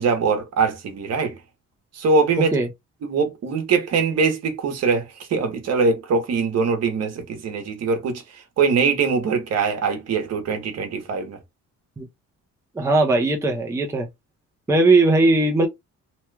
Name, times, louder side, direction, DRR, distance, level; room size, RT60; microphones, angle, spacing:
voice 1, 0.0-1.4 1.9-2.5 3.0-11.4, right 4 dB, 55° right, 1.0 m, -22 dB
voice 2, 12.7-14.1 14.7-15.7, right 2 dB, 10° right, 0.5 m, -18 dB
3.0 x 2.2 x 3.2 m
cardioid pair, 175°, 30 cm